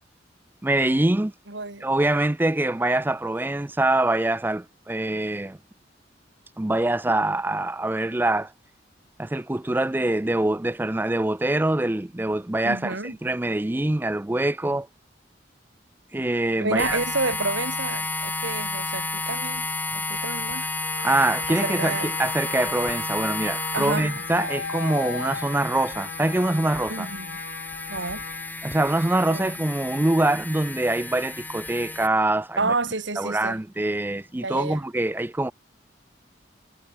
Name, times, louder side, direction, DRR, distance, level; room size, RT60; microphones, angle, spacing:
voice 1, 0.6-1.3 1.8-5.6 6.6-8.5 9.2-12.9 13.2-14.9 16.1-17.0 21.0-27.1 28.6-32.7 33.2-35.5, right 1 dB, 10° right, 0.4 m, -24 dB
voice 2, 1.5-1.9 12.6-13.1 16.6-19.7 19.9-20.8 21.5-22.1 23.7-24.2 26.9-27.3 27.9-28.2 29.3-29.6 32.6-33.6 34.4-34.8, right 3 dB, 90° right, 4.6 m, -29 dB
sound 1, 16.8-32.1, left 2 dB, 10° left, 2.8 m, -32 dB
Wind instrument woodwind instrument, 20.8-28.5, left 5 dB, 80° left, 1.1 m, -37 dB
head